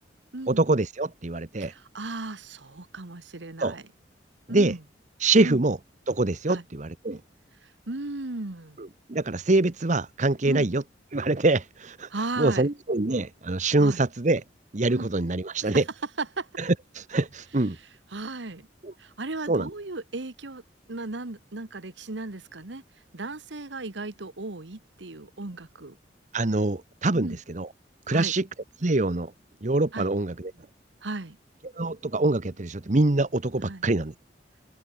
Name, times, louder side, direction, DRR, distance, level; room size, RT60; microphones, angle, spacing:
voice 1, 0.5-1.7 3.6-3.8 4.5-4.7 5.2-5.8 6.1-7.2 8.8-10.8 11.1-12.1 12.4-14.4 14.7-15.8 16.6-17.8 18.8-18.9 19.5-19.7 26.3-27.7 28.1-28.4 28.8-29.3 29.6-30.5 31.8-34.1, right 2 dB, 40° right, 1.0 m, -24 dB
voice 2, 1.6-3.8 4.5-4.8 5.4-5.6 6.5-6.6 7.6-8.8 10.5-10.7 12.1-12.7 13.8-14.0 14.9-15.1 15.6-15.8 16.2-16.5 17.7-17.8 18.1-18.7 19.0-20.6 20.9-22.8 23.1-26.0 27.1-27.4 28.1-28.3 29.9-30.1 31.0-31.4 33.6-33.8, right 2 dB, 80° right, 1.5 m, -35 dB
head